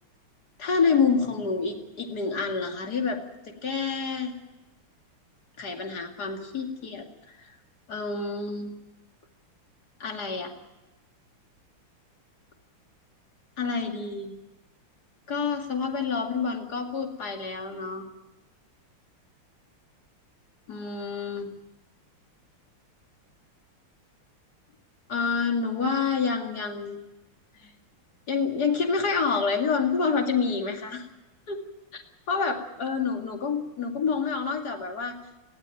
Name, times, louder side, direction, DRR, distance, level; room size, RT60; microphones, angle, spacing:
voice 1, 0.6-3.2 3.6-4.4 5.6-7.0 7.4-7.5 7.9-8.7 10.0-10.5 13.6-14.3 15.3-18.0 20.7-21.5 25.1-27.0 27.6-27.7 28.3-31.0 31.5-31.6 31.9-32.0 32.3-35.2, left 5 dB, 45° left, 2 dB, 2.8 m, -28 dB
19.5 x 17.0 x 9.1 m, 1.0 s
omnidirectional pair, 2.4 m